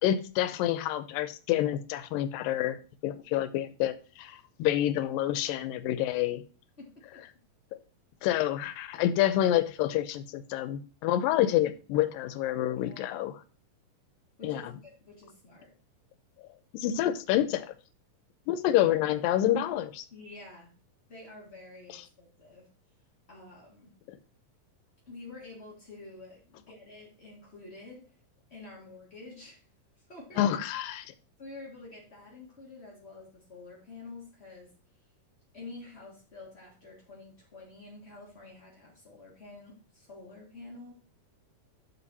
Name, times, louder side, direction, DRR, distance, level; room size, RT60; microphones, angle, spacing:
voice 1, 0.0-2.8 3.0-6.4 8.2-13.3 14.4-14.6 16.7-17.7 18.5-20.0 30.4-31.1, left 12 dB, 85° left, 12 dB, 2.3 m, -28 dB
voice 2, 6.8-7.2 12.7-13.2 14.4-15.7 20.1-20.7 21.1-22.7 23.3-23.9 25.0-28.0 28.5-29.6 30.0-30.4 31.4-34.7 35.5-40.9, left 3 dB, 40° left, -4 dB, 0.8 m, -48 dB
7.0 x 5.2 x 4.1 m, 0.35 s
omnidirectional pair, 4.1 m